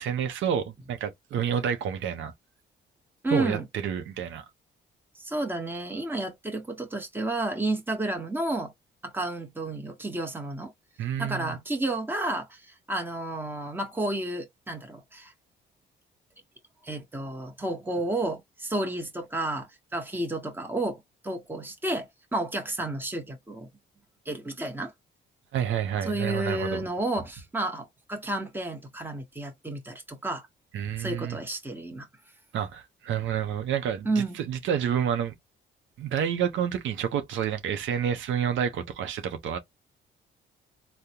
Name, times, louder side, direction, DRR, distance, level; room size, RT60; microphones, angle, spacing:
voice 1, 0.0-2.3 3.3-4.4 11.0-11.6 25.5-26.8 30.7-31.4 32.5-35.3 36.0-39.6, right 8 dB, 75° right, 0.7 m, -29 dB
voice 2, 3.2-3.7 5.2-8.7 9.0-10.7 11.2-15.3 16.8-23.7 24.3-24.9 26.0-30.5 31.0-32.1 34.0-34.4, right 2 dB, 10° right, 1.0 m, -31 dB
3.6 x 2.2 x 2.8 m
cardioid pair, 90°, 20 cm